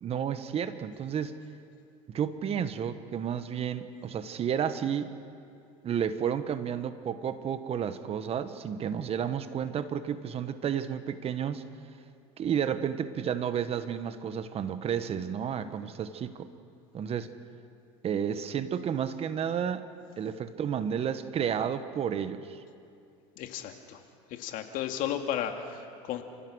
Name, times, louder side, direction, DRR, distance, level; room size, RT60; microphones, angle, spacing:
voice 1, 0.0-1.4 2.1-5.1 5.8-11.6 12.4-16.5 16.9-17.3 18.0-19.9 20.2-22.6, right 8 dB, 40° right, 11 dB, 1.4 m, -31 dB
voice 2, 23.4-24.0 24.3-26.2, left 10 dB, 60° left, 5 dB, 2.3 m, -34 dB
30.0 x 15.5 x 6.4 m, 2.5 s
supercardioid pair, 95°, 16 cm